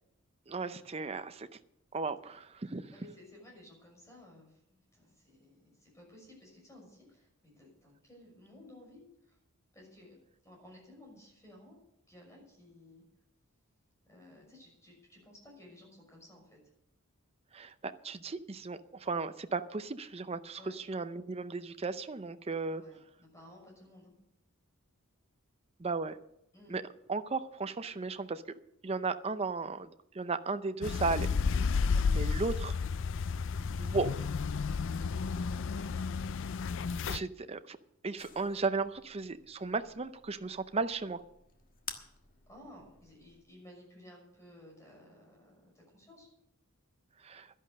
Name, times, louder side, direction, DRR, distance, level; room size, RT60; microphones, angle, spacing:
voice 1, 0.5-1.5 1.9-2.9 17.5-22.8 25.8-26.2 26.7-26.8 27.1-28.4 28.8-29.9 30.1-31.3 32.1-32.8 33.8-34.1 37.1-37.8 38.0-41.2 47.2-47.5, right 4 dB, 30° right, 11 dB, 0.6 m, -35 dB
voice 2, 2.9-9.4 9.7-10.2 10.4-11.8 12.1-13.0 14.0-16.6 20.6-20.8 22.7-24.1 26.5-26.9 31.9-32.2 42.5-46.3, left 1 dB, 15° left, -1 dB, 6.1 m, -56 dB
sound 1, 30.8-37.2, left 5 dB, 60° left, 0.4 m, -32 dB
sound 2, 38.2-43.4, left 7 dB, 40° left, 1.5 m, -51 dB
12.0 x 11.0 x 6.4 m, 0.78 s
head